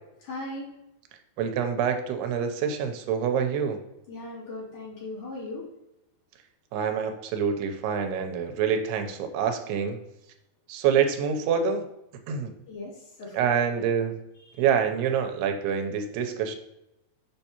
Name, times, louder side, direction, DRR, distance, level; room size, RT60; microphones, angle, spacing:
voice 1, 0.2-0.7 4.1-5.6 12.7-13.5 14.5-14.6, left 2 dB, 50° left, -7 dB, 4.0 m, -38 dB
voice 2, 1.4-3.8 6.7-10.0 10.7-11.8 12.3-12.5 13.3-14.2 14.6-16.6, right 7 dB, 85° right, 6 dB, 2.7 m, -26 dB
7.2 x 5.5 x 2.9 m, 0.88 s
omnidirectional pair, 4.6 m